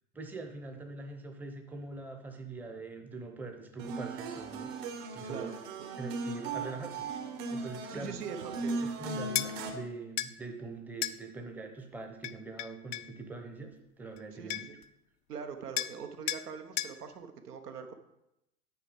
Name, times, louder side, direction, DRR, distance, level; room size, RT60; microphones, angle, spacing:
voice 1, 0.1-4.7 5.1-5.5 6.0-7.2 7.5-8.2 8.8-14.7, right 3 dB, 5° right, 4 dB, 0.8 m, -43 dB
sound 1, 3.8-9.7, right 3 dB, 55° right, 1.5 m, -38 dB
voice 2, 7.9-8.7 14.3-14.8 15.3-17.9, right 6 dB, 75° right, 6 dB, 1.2 m, -42 dB
sound 2, 9.3-9.5 10.2-10.3 11.0-11.2 12.2-13.1 14.2-14.3 14.5-14.8 15.8-16.0 16.3-16.5 16.8-17.0, left 14 dB, 55° left, 0.5 m, -34 dB
9.4 x 4.7 x 5.0 m, 0.86 s
hypercardioid pair, 100°, 47 cm